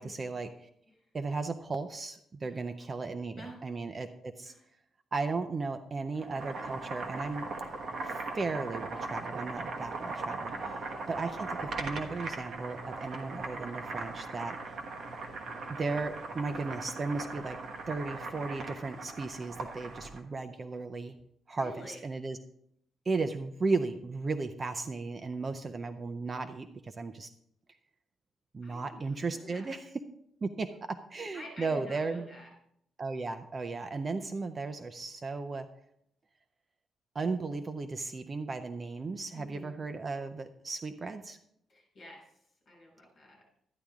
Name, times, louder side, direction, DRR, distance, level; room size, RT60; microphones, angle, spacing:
voice 1, 0.0-0.7 1.1-4.5 5.1-7.5 8.0-10.8 11.1-14.8 15.7-17.6 17.9-21.1 21.5-22.4 23.1-27.3 28.5-29.9 30.4-32.3 33.0-35.7 37.1-41.4, right 3 dB, 25° right, 9 dB, 0.5 m, -35 dB
Boiling, 6.1-20.2, right 3 dB, 50° right, 1.3 m, -39 dB
voice 2, 10.5-10.9 21.6-22.0 28.6-29.8 31.3-32.5 39.3-39.8 41.7-42.4 42.7-43.5, left 1 dB, 35° left, -1 dB, 5.7 m, -49 dB
13.0 x 10.0 x 3.6 m, 0.73 s
wide cardioid pair, 175°, 0 cm